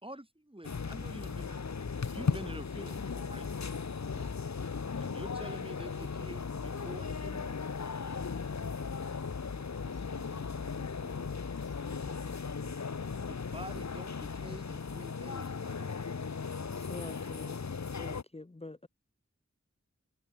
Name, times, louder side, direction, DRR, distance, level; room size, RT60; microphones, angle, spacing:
voice 1, 0.0-3.5 5.0-7.5 13.3-16.0, right 1 dB, 20° right, 3.6 m, -47 dB
sound 1, 0.6-18.2, left 5 dB, 70° left, 0.8 m, -37 dB
voice 2, 4.1-4.5 9.2-12.8, right 2 dB, 60° right, 6.6 m, -59 dB
voice 3, 16.8-17.6 18.0-18.9, left 2 dB, 20° left, 0.7 m, -45 dB
wide cardioid pair, 45°, 29 cm